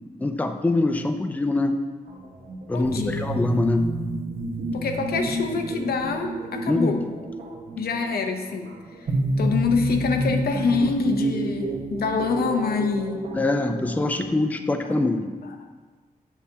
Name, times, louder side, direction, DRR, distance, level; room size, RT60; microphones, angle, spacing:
voice 1, 0.2-1.8 2.7-3.9 6.7-6.9 13.3-15.3, left 2 dB, 10° left, 7 dB, 0.4 m, -23 dB
sound 1, 2.1-14.2, right 1 dB, 65° right, 1.0 m, -30 dB
voice 2, 2.7-3.2 4.7-7.0 7.8-8.8 9.4-13.3 14.8-15.0, left 4 dB, 85° left, 5 dB, 0.7 m, -25 dB
8.2 x 6.7 x 2.8 m, 1.4 s
wide cardioid pair, 130°, 15 cm